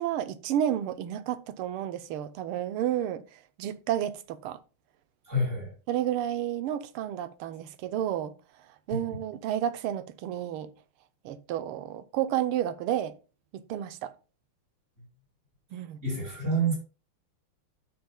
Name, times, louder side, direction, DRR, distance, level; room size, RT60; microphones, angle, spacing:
voice 1, 0.0-3.2 3.6-4.6 5.9-8.3 8.9-10.7 11.2-13.1 13.5-14.1 15.7-16.0, right 11 dB, 85° right, 1.6 m, -31 dB
voice 2, 5.2-5.7 8.9-9.0 16.0-16.7, right 2 dB, 30° right, 5.1 m, -28 dB
12.5 x 6.3 x 2.2 m
omnidirectional pair, 2.4 m